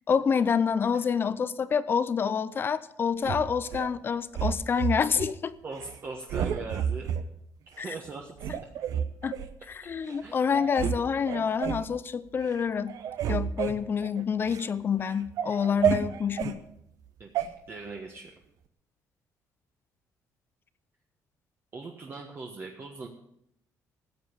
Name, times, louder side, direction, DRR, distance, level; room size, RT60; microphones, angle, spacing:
voice 1, 0.1-5.5 7.8-7.9 9.2-9.3 9.7-13.0 13.3-16.6, left 6 dB, 35° left, 0.6 m, -27 dB
sound 1, 3.2-3.9 4.3-5.3 5.7-6.0 6.3-7.2 7.8-7.9 8.4-9.5 10.1-10.2 10.5-11.0 11.3-11.9 12.3-12.6 12.9-14.7 15.1-16.6 17.4-17.5, right 9 dB, 70° right, 0.9 m, -30 dB
voice 2, 5.6-7.1 7.8-8.5 10.2-10.4 11.3-11.5 17.2-18.3 21.7-23.1, right 3 dB, 35° right, 1.4 m, -40 dB
14.5 x 7.7 x 6.7 m
cardioid pair, 125°, 6 cm